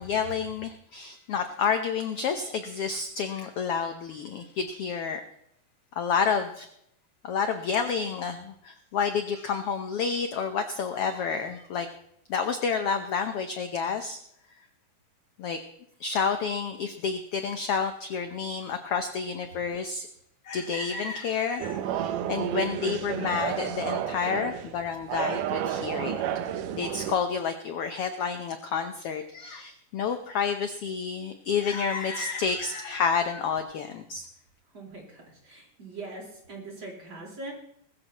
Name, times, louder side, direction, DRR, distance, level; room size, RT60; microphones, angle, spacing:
voice 1, 0.0-5.2 5.9-6.7 7.2-11.9 12.3-14.2 15.4-15.6 16.0-20.1 20.4-26.2 26.7-34.3, left 6 dB, 70° left, 7 dB, 1.4 m, -29 dB
sound 1, 21.6-27.2, right 10 dB, 90° right, 2.5 m, -31 dB
voice 2, 34.7-37.5, right 2 dB, 35° right, -2 dB, 5.0 m, -42 dB
20.5 x 14.0 x 3.0 m, 0.73 s
omnidirectional pair, 3.6 m